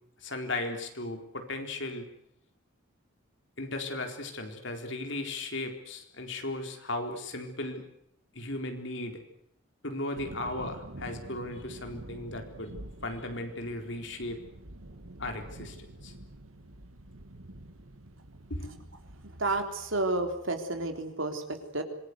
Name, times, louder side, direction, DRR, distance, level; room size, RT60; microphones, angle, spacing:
voice 1, 0.2-2.1 3.6-7.8 8.3-9.2 9.8-12.7 13.0-14.4 15.2-15.8 16.0-16.1 18.5-18.7, left 2 dB, 60° left, 5 dB, 4.2 m, -36 dB
sound 1, 10.1-19.6, right 1 dB, 90° right, 1.8 m, -47 dB
voice 2, 19.1-21.8, right 2 dB, 70° right, 6 dB, 3.8 m, -31 dB
26.0 x 21.0 x 8.2 m, 0.76 s
head